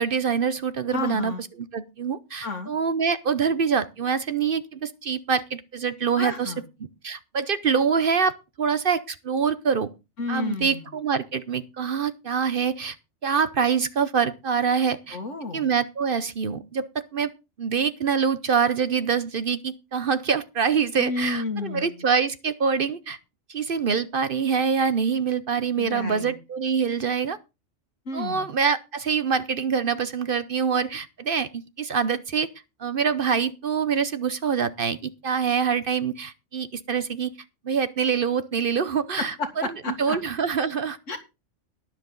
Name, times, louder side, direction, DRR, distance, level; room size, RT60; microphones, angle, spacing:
voice 1, 0.0-1.3 1.7-6.5 7.0-9.9 10.3-13.0 13.2-15.2 15.5-17.3 17.6-23.2 23.5-27.4 28.1-32.5 32.8-37.3 37.6-39.3 40.0-41.0, right 6 dB, 50° right, 0.8 m, -25 dB
voice 2, 0.9-1.4 2.4-2.7 6.2-6.6 10.2-10.9 15.1-15.7 21.0-22.1 25.8-26.4 28.1-28.5 39.2-40.2 41.1-41.2, left 3 dB, 75° left, 2.2 m, -31 dB
12.0 x 10.5 x 3.8 m
omnidirectional pair, 1.3 m